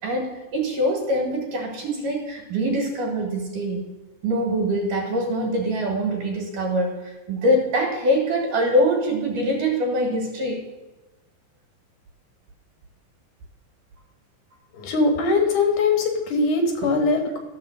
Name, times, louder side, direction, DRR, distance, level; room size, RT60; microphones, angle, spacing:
voice 1, 0.0-3.8 4.2-10.6 16.8-16.9, equal, 75° right, 1 dB, 3.3 m, -24 dB
voice 2, 14.7-17.4, left 3 dB, 70° left, 3 dB, 2.8 m, -21 dB
13.0 x 5.9 x 6.8 m, 1.1 s
omnidirectional pair, 3.8 m